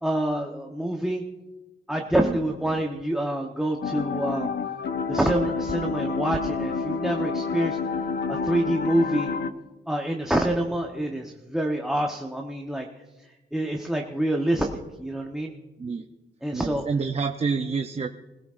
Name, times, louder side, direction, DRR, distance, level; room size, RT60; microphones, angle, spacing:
voice 1, 0.0-1.2 1.9-4.5 5.1-7.8 8.3-9.3 9.9-12.9 13.5-14.7 15.0-15.5 16.4-16.9, right 1 dB, 5° right, 2 dB, 1.0 m, -26 dB
sound 1, 3.8-9.5, left 4 dB, 60° left, 0.9 m, -29 dB
voice 2, 16.5-18.1, right 5 dB, 30° right, 5 dB, 0.6 m, -28 dB
25.5 x 17.0 x 2.5 m, 1.1 s
wide cardioid pair, 145°, 20 cm